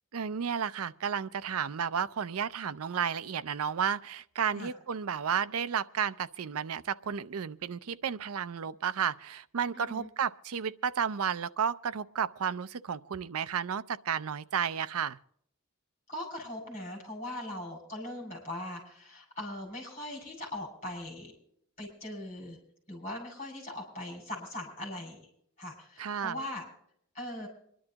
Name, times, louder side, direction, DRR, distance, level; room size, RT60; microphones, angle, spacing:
voice 1, 0.1-15.2 26.0-26.4, right 7 dB, 90° right, 0.5 m, -32 dB
voice 2, 9.7-10.1 16.1-21.3 21.8-22.6 22.9-25.3 25.6-26.6 27.1-27.5, left 1 dB, 30° left, 5.8 m, -40 dB
26.5 x 11.0 x 2.9 m
head